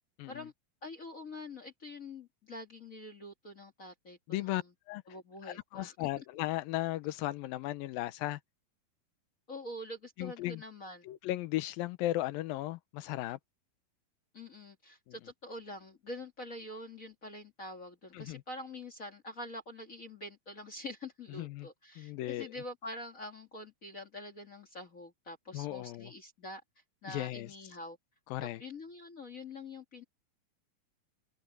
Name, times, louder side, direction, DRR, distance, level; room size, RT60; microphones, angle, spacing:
voice 1, 0.8-4.7 5.1-6.1 9.5-11.1 14.3-26.6 27.0-28.0 28.4-30.0, left 1 dB, 35° left, 1.3 m, -45 dB
voice 2, 4.3-4.6 4.9-5.0 5.4-8.4 10.2-10.6 11.0-13.4 15.1-15.2 18.1-18.4 21.3-21.7 22.0-22.5 25.5-26.1 27.1-27.5 28.3-28.6, left 16 dB, 80° left, 2.5 m, -36 dB
open air
omnidirectional pair, 4.3 m